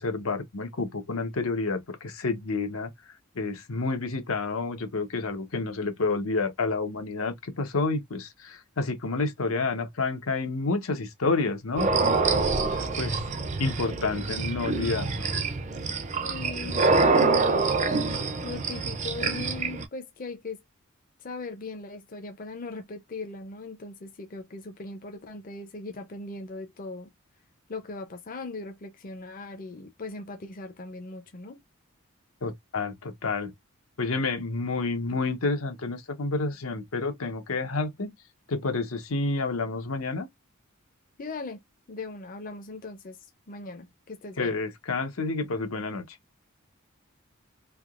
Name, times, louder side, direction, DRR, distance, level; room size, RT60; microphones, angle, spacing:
voice 1, 0.0-2.9 3.3-11.9 12.3-13.2 13.6-15.3 32.4-33.5 34.0-38.1 38.5-40.3 44.4-46.2, left 3 dB, 85° left, 0.9 m, -29 dB
sound 1, 11.8-19.8, right 3 dB, 35° right, 0.5 m, -26 dB
voice 2, 16.2-17.7 18.4-20.6 21.2-27.1 27.7-31.6 41.2-41.6 41.9-43.2 43.5-44.6, left 3 dB, 40° left, 0.6 m, -39 dB
3.4 x 2.8 x 2.4 m
head